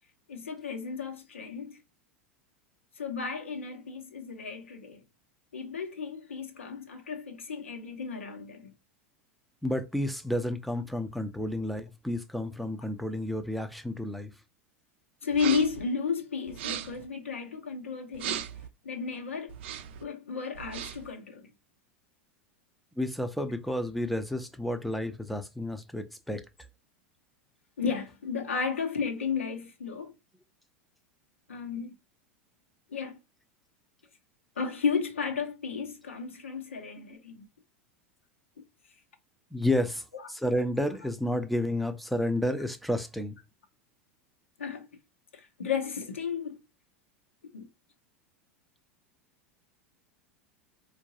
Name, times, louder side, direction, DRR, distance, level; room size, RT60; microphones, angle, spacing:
voice 1, 0.3-1.8 3.0-5.0 5.5-8.7 15.2-18.5 18.8-19.5 20.0-21.5 27.8-30.1 31.5-32.0 32.9-33.2 34.6-37.5 44.6-44.9 45.3-46.6 47.5-47.7, left 5 dB, 80° left, 0.9 m, -33 dB
voice 2, 9.6-14.3 23.0-26.4 39.5-43.4, left 1 dB, ahead, 0.6 m, -31 dB
sound 1, 15.3-15.8 16.5-17.1 18.1-18.7 19.5-20.0 20.5-21.1, right 10 dB, 60° right, 0.5 m, -37 dB
4.4 x 2.4 x 2.7 m
figure-of-eight pair, 85°, 7 cm